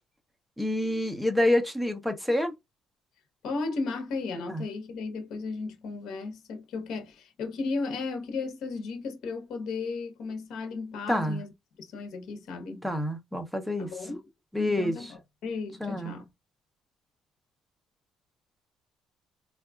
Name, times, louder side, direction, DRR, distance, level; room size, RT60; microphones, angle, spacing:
voice 1, 0.6-2.5 4.5-4.6 11.1-11.4 12.8-13.9 14.5-15.1 15.8-16.2, left 1 dB, ahead, 0.6 m, -27 dB
voice 2, 3.4-11.5 11.8-12.9 13.8-14.2 14.6-16.3, left 4 dB, 70° left, 0.9 m, -35 dB
4.0 x 2.3 x 2.3 m
cardioid pair, 145°, 0 cm